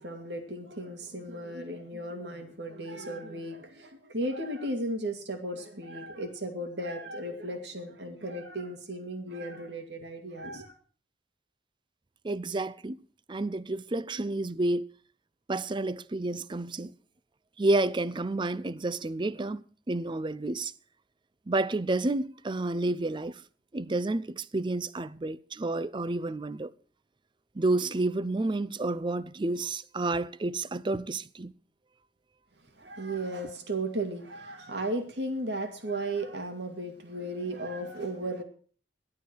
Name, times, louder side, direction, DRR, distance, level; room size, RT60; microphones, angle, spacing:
voice 1, 0.0-10.7 32.8-38.4, right 1 dB, 70° right, 2.4 m, -35 dB
voice 2, 12.2-13.0 13.3-14.9 15.5-16.9 17.6-20.7 21.5-23.4 23.7-26.7 27.6-31.5, right 2 dB, 25° right, 0.5 m, -30 dB
15.0 x 12.0 x 4.6 m
head